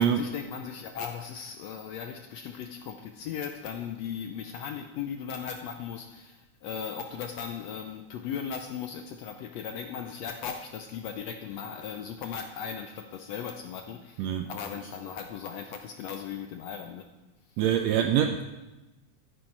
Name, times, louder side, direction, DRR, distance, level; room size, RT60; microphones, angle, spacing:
voice 1, 0.0-17.1 17.5-17.6, left 7 dB, 80° left, 6 dB, 1.5 m, -37 dB
voice 2, 14.2-14.5 14.8-14.9 17.6-18.4, right 9 dB, 85° right, 7 dB, 1.5 m, -25 dB
13.0 x 10.0 x 4.5 m, 1.1 s
omnidirectional pair, 3.6 m